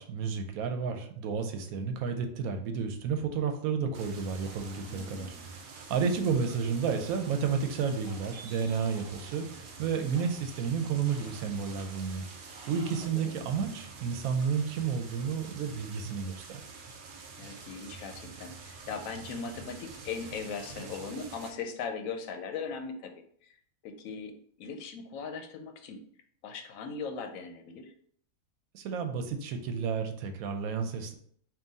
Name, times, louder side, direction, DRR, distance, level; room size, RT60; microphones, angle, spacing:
voice 1, 0.0-16.6 28.7-31.1, right 6 dB, 85° right, 6 dB, 1.1 m, -31 dB
sound 1, 3.9-21.5, right 4 dB, 60° right, 0.5 m, -47 dB
sound 2, 4.4-13.1, right 1 dB, 40° right, 1.3 m, -55 dB
voice 2, 4.9-5.5 12.9-13.4 17.4-23.1 23.4-23.6 23.8-26.1 26.4-27.9, left 5 dB, 75° left, 5 dB, 1.0 m, -39 dB
3.7 x 2.5 x 4.0 m, 0.62 s
omnidirectional pair, 1.5 m